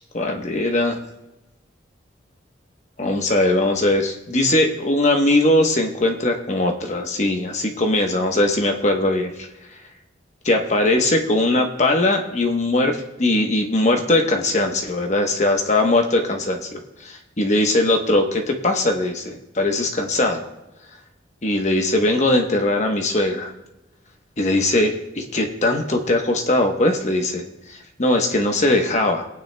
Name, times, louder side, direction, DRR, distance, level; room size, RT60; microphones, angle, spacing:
voice 1, 0.1-1.0 3.0-9.3 10.4-20.5 21.4-23.5 24.4-27.4 27.7-29.3, left 1 dB, 40° left, 3 dB, 1.0 m, -20 dB
22.5 x 9.2 x 2.3 m, 0.98 s
head